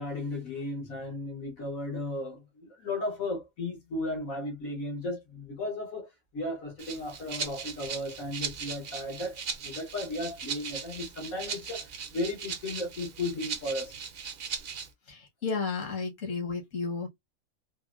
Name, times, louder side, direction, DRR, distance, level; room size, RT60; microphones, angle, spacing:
voice 1, 0.0-13.9, left 2 dB, 90° left, 1.7 m, -35 dB
Rattle (instrument), 6.8-14.9, right 6 dB, 55° right, 0.8 m, -38 dB
voice 2, 15.1-17.1, left 4 dB, 70° left, 1.5 m, -33 dB
3.5 x 2.1 x 2.4 m
omnidirectional pair, 1.4 m